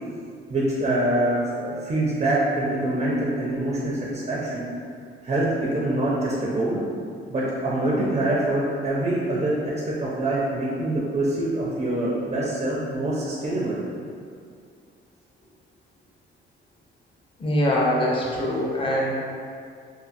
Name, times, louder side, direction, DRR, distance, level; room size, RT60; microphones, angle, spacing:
voice 1, 0.5-4.6 5.2-6.8 7.3-9.6 9.9-13.8, right 1 dB, 35° right, -5 dB, 0.4 m, -25 dB
voice 2, 17.4-19.1, left 1 dB, 25° left, -4 dB, 0.6 m, -23 dB
2.6 x 2.5 x 2.5 m, 2.3 s
cardioid pair, 90°, 20 cm